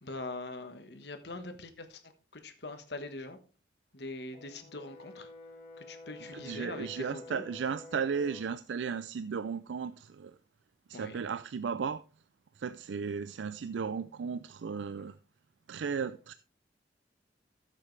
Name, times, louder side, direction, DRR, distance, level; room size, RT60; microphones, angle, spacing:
voice 1, 0.0-2.0 2.3-3.4 3.9-5.3 5.9-7.4 10.9-11.2, left 2 dB, 70° left, 1.4 m, -42 dB
Brass instrument, 4.3-8.6, left 2 dB, 40° left, 2.5 m, -50 dB
voice 2, 6.2-10.3 10.9-12.0 12.6-15.2 15.7-16.3, right 6 dB, 85° right, 0.4 m, -35 dB
13.5 x 7.6 x 3.3 m
head